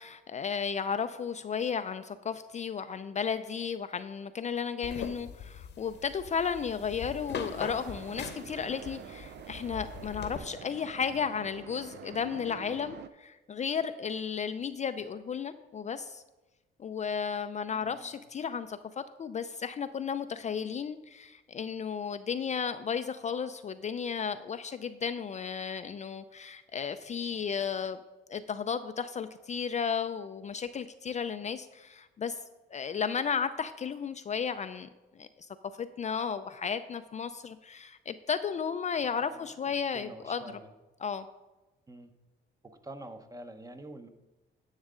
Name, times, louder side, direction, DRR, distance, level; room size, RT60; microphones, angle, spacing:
voice 1, 0.0-16.2 16.8-28.0 28.3-32.4 32.7-34.9 35.2-35.5 35.8-40.4 41.0-41.3, left 6 dB, 35° left, 10 dB, 0.4 m, -34 dB
sound 1, 4.8-10.4, left 6 dB, 60° left, 0.9 m, -42 dB
sound 2, 7.4-13.1, right 9 dB, 60° right, 0.4 m, -47 dB
voice 2, 17.7-18.1 39.2-39.5 39.9-40.7 41.9-42.1 42.6-44.1, right 1 dB, 15° right, 8 dB, 0.9 m, -46 dB
10.5 x 6.4 x 3.7 m, 1.1 s
cardioid pair, 90°, 20 cm